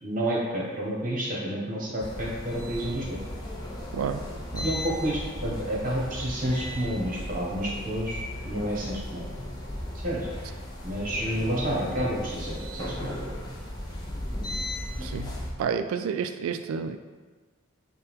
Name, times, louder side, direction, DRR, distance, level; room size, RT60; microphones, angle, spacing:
voice 1, 0.0-3.2 4.6-8.2 8.4-9.2 10.0-10.3 10.8-13.1, equal, 40° right, -4 dB, 1.0 m, -30 dB
sound 1, 2.0-15.5, left 1 dB, 20° left, 0.5 m, -36 dB
voice 2, 3.9-4.2 4.5-4.7 15.0-15.3 15.6-17.0, right 6 dB, 85° right, 9 dB, 0.3 m, -30 dB
5.6 x 2.2 x 3.5 m, 1.4 s
head